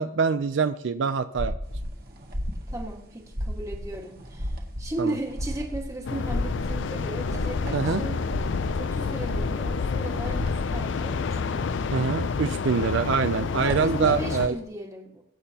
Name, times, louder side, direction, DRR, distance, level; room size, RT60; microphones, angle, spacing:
voice 1, 0.0-1.5 5.0-5.1 7.7-8.0 11.9-14.6, right 5 dB, 65° right, 11 dB, 0.4 m, -25 dB
sound 1, 1.4-1.9 2.2-2.9 3.3-3.9 4.3-4.9 5.3-5.9 6.3-6.9 7.2-7.8 8.2-8.9 9.2-9.8 10.3-10.8, equal, 90° right, 3.8 m, -31 dB
sound 2, 1.6-14.6, right 1 dB, 45° right, 1.8 m, -46 dB
voice 2, 2.7-8.2 8.8-11.7 13.6-15.2, right 2 dB, 15° right, 1 dB, 1.6 m, -36 dB
sound 3, 6.0-14.5, left 5 dB, 60° left, 0.4 m, -29 dB
22.0 x 8.8 x 2.9 m, 0.75 s
head